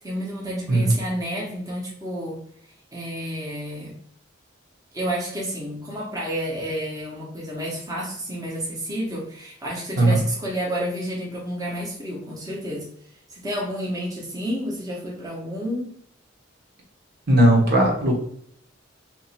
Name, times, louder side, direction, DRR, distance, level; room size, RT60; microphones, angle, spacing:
voice 1, 0.0-2.4 2.9-3.9 4.9-12.9 13.3-16.0, equal, 20° right, -5 dB, 0.9 m, -30 dB
voice 2, 17.3-18.1, right 1 dB, 55° right, -2 dB, 1.1 m, -17 dB
2.9 x 2.6 x 4.1 m, 0.64 s
head